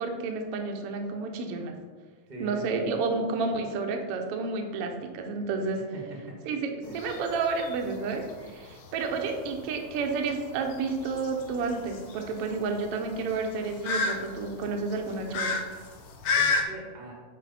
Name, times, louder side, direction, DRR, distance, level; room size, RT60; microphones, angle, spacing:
voice 1, 0.0-1.7 2.4-5.8 6.5-6.6 6.9-15.6, right 4 dB, 70° right, 4 dB, 1.5 m, -30 dB
voice 2, 2.3-2.9 5.8-6.5 6.8-7.0 16.4-17.1, right 1 dB, 35° right, -2 dB, 0.7 m, -42 dB
sound 1, 6.8-16.6, left 4 dB, 90° left, 1.1 m, -33 dB
7.5 x 4.6 x 4.1 m, 1.5 s
omnidirectional pair, 3.3 m